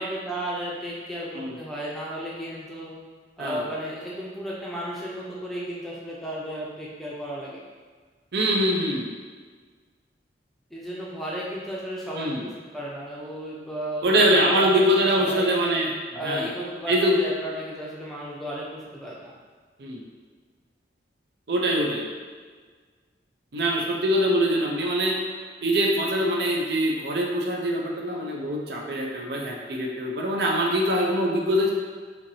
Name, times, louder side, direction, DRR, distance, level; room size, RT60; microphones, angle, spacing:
voice 1, 0.0-2.9 3.4-7.6 10.7-14.7 15.2-15.5 16.1-19.3, equal, ahead, -6 dB, 0.5 m, -34 dB
voice 2, 8.3-9.1 12.1-12.4 14.0-15.9 16.2-16.5 16.9-17.2 19.8-20.0 21.5-22.0 23.5-25.2 25.6-31.7, equal, 65° right, -1 dB, 0.5 m, -23 dB
4.4 x 2.7 x 2.7 m, 1.5 s
head